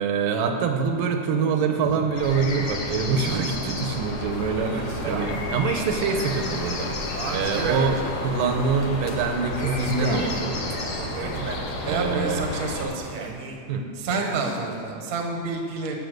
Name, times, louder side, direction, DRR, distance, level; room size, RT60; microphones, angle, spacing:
voice 1, 0.0-11.5 11.9-12.5 13.7-13.9, right 5 dB, 85° right, 5 dB, 2.7 m, -25 dB
sound 1, 2.1-12.8, left 2 dB, 75° left, 3.1 m, -31 dB
sound 2, 3.2-3.7 4.7-5.6 5.9-6.0 7.1-8.6 9.5-10.4 10.9-12.0 13.0-13.6 14.1-14.9, right 4 dB, 65° right, 1.5 m, -35 dB
voice 2, 11.8-13.4 13.9-16.0, right 3 dB, 45° right, 2 dB, 1.2 m, -29 dB
17.0 x 7.5 x 6.5 m, 2.4 s
omnidirectional pair, 3.8 m